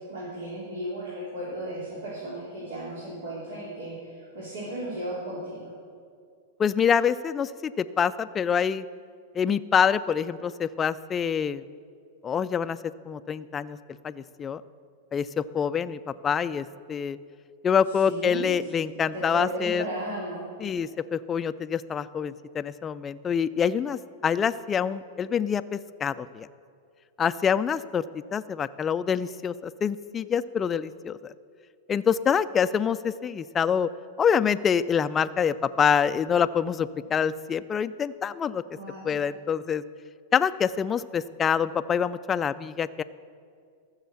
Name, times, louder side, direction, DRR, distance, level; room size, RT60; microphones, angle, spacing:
voice 1, 0.1-5.7 18.0-18.5 19.1-20.4 38.7-39.1, right 1 dB, 85° right, -8 dB, 3.4 m, -35 dB
voice 2, 6.6-8.9 9.3-11.6 12.2-13.8 14.0-14.6 15.1-17.2 17.6-19.8 20.6-26.5 27.2-28.0 28.3-31.3 31.9-33.9 34.2-38.6 39.0-39.8 40.3-43.0, left 7 dB, 20° left, 13 dB, 0.3 m, -26 dB
14.5 x 6.4 x 7.0 m, 2.2 s
hypercardioid pair, 135°, 0 cm